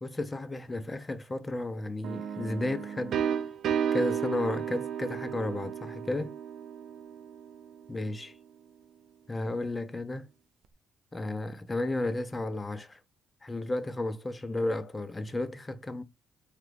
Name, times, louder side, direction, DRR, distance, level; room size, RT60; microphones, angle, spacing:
voice 1, 0.0-3.2 3.9-6.3 7.9-8.3 9.3-10.3 11.1-13.0 13.4-16.0, left 2 dB, 25° left, 0.5 m, -33 dB
sound 1, 2.0-7.7, right 8 dB, 65° right, 0.3 m, -33 dB
2.8 x 2.4 x 3.3 m
supercardioid pair, 60°, 0 cm